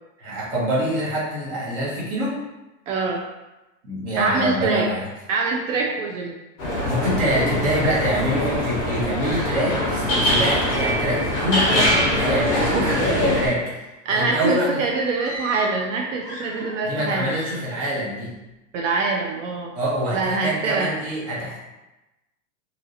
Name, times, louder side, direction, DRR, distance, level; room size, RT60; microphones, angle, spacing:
voice 1, 0.2-2.4 3.8-5.1 6.8-14.8 16.9-18.3 19.7-21.6, equal, 30° right, -5 dB, 0.7 m, -25 dB
voice 2, 2.9-3.2 4.2-4.9 5.3-6.3 12.7-13.1 14.1-17.3 18.7-19.8 20.1-20.9, right 4 dB, 70° right, 0 dB, 0.5 m, -24 dB
sound 1, 6.6-13.5, left 1 dB, 10° left, 0.4 m, -22 dB
sound 2, 15.1-15.9 16.2-16.9 17.2-17.8, left 1 dB, 30° left, 1.0 m, -37 dB
2.9 x 2.8 x 2.5 m, 1.0 s
supercardioid pair, 180°, 40 cm